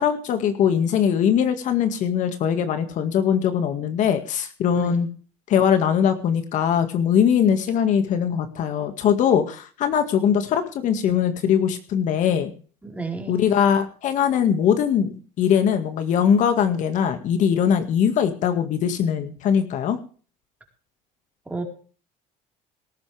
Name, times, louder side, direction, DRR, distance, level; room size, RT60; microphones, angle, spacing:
voice 1, 0.0-5.1 5.5-12.5 13.3-20.0, left 8 dB, 55° left, 8 dB, 2.0 m, -21 dB
voice 2, 12.8-13.4 21.5-21.6, right 3 dB, 10° right, 2 dB, 4.4 m, -31 dB
18.5 x 14.0 x 3.5 m, 0.40 s
cardioid pair, 130°, 16 cm